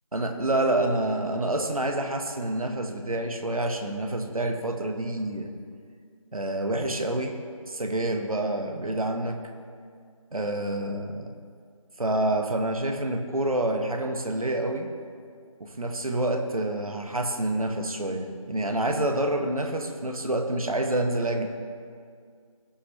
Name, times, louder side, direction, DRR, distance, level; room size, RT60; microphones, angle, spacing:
voice 1, 0.1-5.5 6.3-7.4 7.7-9.4 10.3-11.3 12.0-14.9 15.6-21.5, right 1 dB, 80° right, 5 dB, 1.3 m, -27 dB
17.5 x 6.4 x 3.2 m, 2.2 s
figure-of-eight pair, 165°, 18 cm